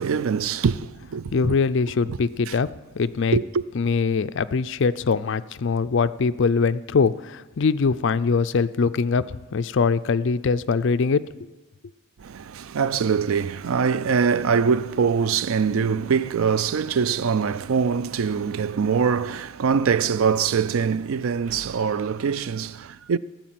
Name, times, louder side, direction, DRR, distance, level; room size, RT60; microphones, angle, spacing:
voice 1, 0.0-1.6 2.1-2.2 2.5-2.6 3.3-3.6 12.2-23.2, right 6 dB, 70° right, 0.4 m, -23 dB
voice 2, 1.3-2.7 3.0-3.4 3.8-11.2, left 5 dB, 55° left, 0.4 m, -22 dB
15.0 x 9.2 x 7.6 m
head